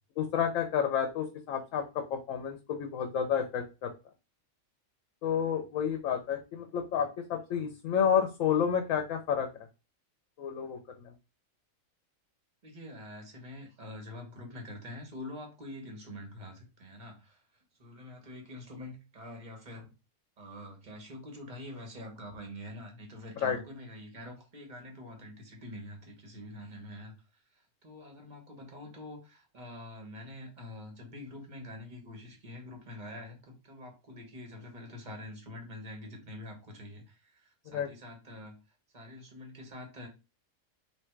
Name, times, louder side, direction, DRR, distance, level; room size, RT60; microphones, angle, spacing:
voice 1, 0.2-3.9 5.2-9.5 10.4-10.8 23.4-23.6 37.7-37.9, left 8 dB, 75° left, 5 dB, 1.0 m, -30 dB
voice 2, 12.6-19.9 20.4-38.6 38.9-40.1, left 1 dB, 35° right, 2 dB, 1.4 m, -46 dB
3.4 x 2.8 x 4.5 m, 0.29 s
omnidirectional pair, 1.4 m